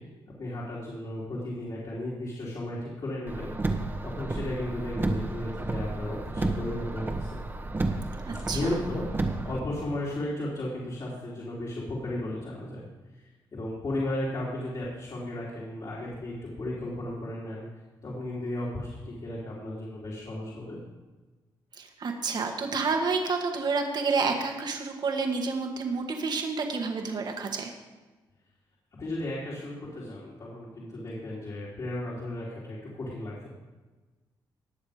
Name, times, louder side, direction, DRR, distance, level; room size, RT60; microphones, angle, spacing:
voice 1, 0.4-7.4 8.5-12.8 13.1-13.2 13.5-17.7 18.0-20.8 29.0-33.5, left 1 dB, 50° left, -6 dB, 3.8 m, -35 dB
Car, 3.3-9.6, right 2 dB, 25° right, 1.5 m, -32 dB
voice 2, 8.3-8.6 21.8-27.7, right 4 dB, 55° right, 3 dB, 2.0 m, -29 dB
19.5 x 7.1 x 5.2 m, 1.2 s
cardioid pair, 90°, 9 cm